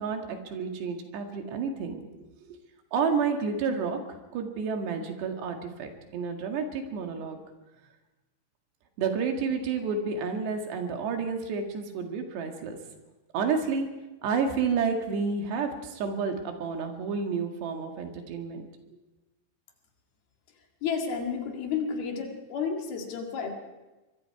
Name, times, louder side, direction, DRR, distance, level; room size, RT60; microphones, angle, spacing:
voice 1, 0.0-2.0 2.5-2.6 2.9-7.4 9.0-12.8 13.3-13.9 14.2-18.7, right 5 dB, 85° right, 4 dB, 4.1 m, -30 dB
voice 2, 20.8-23.5, left 6 dB, 65° left, 2 dB, 4.0 m, -31 dB
24.0 x 22.5 x 4.8 m, 1.1 s
omnidirectional pair, 4.8 m